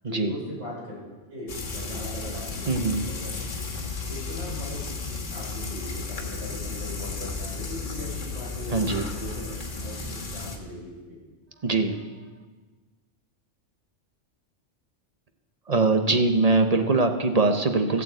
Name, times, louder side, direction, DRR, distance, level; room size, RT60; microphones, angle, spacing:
voice 1, 0.0-1.0 1.3-3.3 4.1-9.5 9.8-11.2, equal, 80° right, -4 dB, 5.1 m, -39 dB
Frying (food), 1.5-10.6, left 4 dB, 85° left, 1.9 m, -34 dB
voice 2, 2.7-3.1 8.7-9.1 11.6-12.0 15.7-18.0, right 3 dB, 35° right, 6 dB, 0.9 m, -22 dB
13.5 x 8.3 x 8.1 m, 1.3 s
omnidirectional pair, 1.2 m